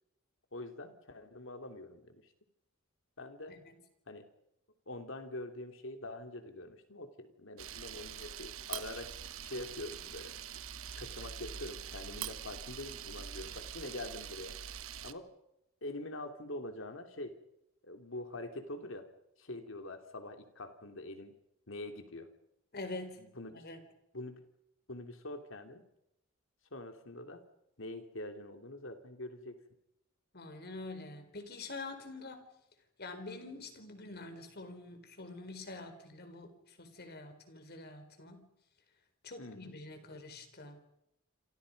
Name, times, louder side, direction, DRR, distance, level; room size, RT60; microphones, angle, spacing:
voice 1, 0.5-2.2 3.2-3.6 4.1-4.2 4.9-9.1 9.4-10.3 10.7-14.5 15.0-15.3 15.8-17.3 17.8-19.1 19.4-21.3 21.7-22.3 23.2-23.6 24.1-24.4 24.9-25.8 26.7-27.4 27.8-29.6 39.4-39.8, left 2 dB, 65° left, 6 dB, 3.2 m, -44 dB
Camera, 7.6-15.1, right 8 dB, 80° right, 1.1 m, -44 dB
voice 2, 22.7-23.8 30.3-32.6 33.0-38.5 39.2-40.8, left 2 dB, 50° left, 8 dB, 4.3 m, -46 dB
27.5 x 27.0 x 5.4 m, 0.82 s
head